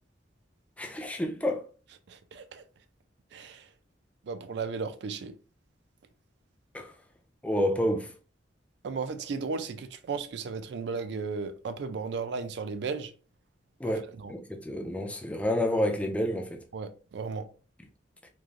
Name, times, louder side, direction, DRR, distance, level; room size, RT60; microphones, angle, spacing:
voice 1, 0.8-1.6 6.7-6.9 7.4-8.1 13.8-16.6, left 1 dB, 5° left, 0.3 m, -29 dB
voice 2, 2.1-2.6 3.3-3.7 4.2-5.3 8.8-13.1 13.8-14.3 16.7-17.5, right 5 dB, 65° right, 0.3 m, -35 dB
3.1 x 2.4 x 2.4 m
head